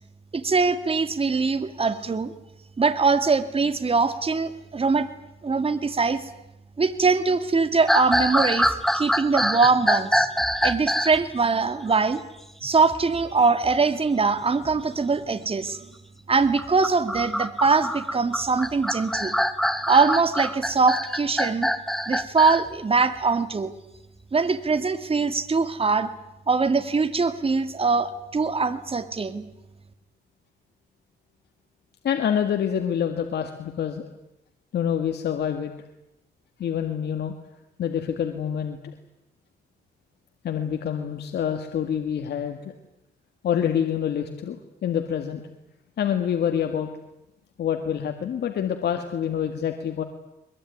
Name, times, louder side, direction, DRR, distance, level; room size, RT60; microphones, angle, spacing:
voice 1, 0.3-2.3 2.8-5.1 5.4-6.2 6.8-8.7 8.9-10.3 10.6-12.2 12.6-15.8 16.3-19.3 19.9-21.7 22.1-23.7 24.3-26.1 26.5-29.5, right 4 dB, 35° right, 10 dB, 2.4 m, -22 dB
sound 1, 7.9-11.2 12.6-13.2 13.6-13.7 14.4-14.8 16.4-22.6, equal, ahead, 1.6 m, -25 dB
voice 2, 32.0-34.0 34.7-35.7 36.6-37.3 37.8-38.8 40.4-42.6 43.4-45.4 46.0-46.9 47.6-50.0, left 8 dB, 70° left, 6 dB, 2.1 m, -26 dB
22.0 x 22.0 x 9.6 m, 0.90 s
cardioid pair, 85°, 18 cm